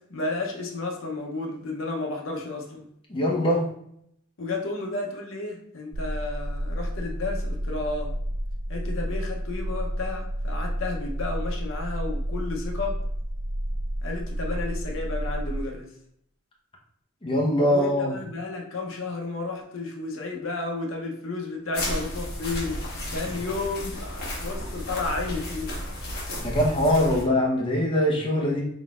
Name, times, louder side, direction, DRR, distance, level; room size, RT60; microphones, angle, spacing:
voice 1, 0.0-2.9 4.4-8.1 8.7-13.0 14.0-15.9 17.7-22.8 23.1-25.7, left 3 dB, 70° left, 1 dB, 0.8 m, -32 dB
voice 2, 3.1-3.6 17.2-18.1 26.4-28.7, left 1 dB, 25° left, -4 dB, 0.9 m, -22 dB
sound 1, 5.9-15.7, equal, 30° right, 0.4 m, -30 dB
sound 2, 21.7-27.2, left 1 dB, 50° left, 1.2 m, -33 dB
3.9 x 3.9 x 2.4 m, 0.71 s
head